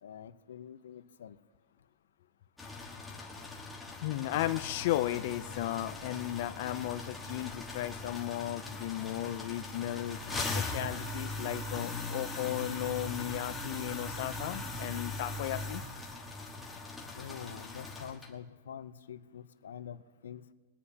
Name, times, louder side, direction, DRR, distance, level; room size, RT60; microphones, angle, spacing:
voice 1, 0.0-1.4 17.1-20.4, left 8 dB, 85° left, 12 dB, 0.7 m, -46 dB
sound 1, 2.6-18.3, left 2 dB, 5° left, 1.5 m, -40 dB
voice 2, 4.0-15.8, left 14 dB, 50° left, 11 dB, 0.4 m, -35 dB
23.0 x 9.8 x 2.8 m, 1.4 s
hypercardioid pair, 155°, 0 cm